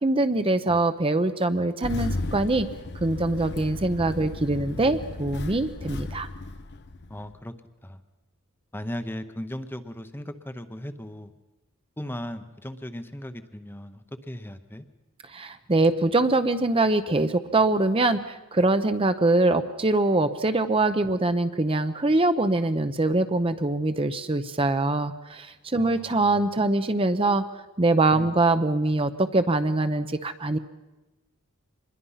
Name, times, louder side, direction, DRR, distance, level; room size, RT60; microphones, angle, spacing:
voice 1, 0.0-2.7 3.0-6.3 15.3-27.4 27.8-30.6, right 2 dB, 25° right, 9 dB, 0.7 m, -23 dB
Engine starting, 1.8-7.4, left 2 dB, 50° left, 0.9 m, -35 dB
voice 2, 4.0-5.0 7.1-7.5 7.8-8.0 8.7-11.3 12.0-14.9 25.7-26.4 28.1-28.3, left 1 dB, 10° left, 9 dB, 0.8 m, -37 dB
25.5 x 21.0 x 5.7 m, 1.1 s
head